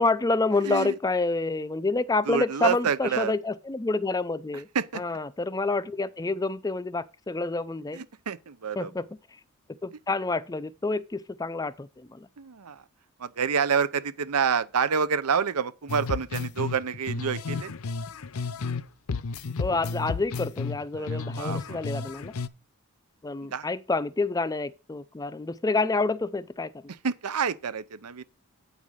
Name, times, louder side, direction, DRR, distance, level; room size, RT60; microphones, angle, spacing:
voice 1, 0.0-4.7 4.9-8.0 8.8-9.1 9.8-12.3 19.6-22.3 23.2-26.7, left 3 dB, 15° left, 0.4 m, -28 dB
voice 2, 0.6-0.9 2.3-3.3 4.7-5.0 7.9-8.9 12.4-12.8 13.2-17.7 21.0-21.8 23.5-23.7 27.0-28.2, right 6 dB, 90° right, 0.7 m, -28 dB
sound 1, 15.9-18.8 19.1-22.5, left 4 dB, 75° left, 0.6 m, -32 dB
8.5 x 5.5 x 6.3 m
head